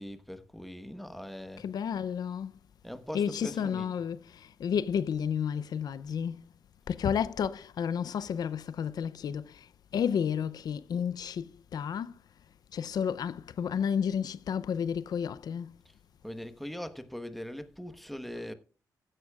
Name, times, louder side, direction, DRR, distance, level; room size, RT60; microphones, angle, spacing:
voice 1, 0.0-1.7 2.8-4.0 15.8-15.9 16.2-18.5, equal, ahead, 1.1 m, -41 dB
voice 2, 1.6-2.6 3.1-6.5 6.9-12.2 12.7-15.8 18.3-18.4, left 7 dB, 75° left, 0.5 m, -32 dB
15.5 x 11.0 x 2.4 m
wide cardioid pair, 140°, 7 cm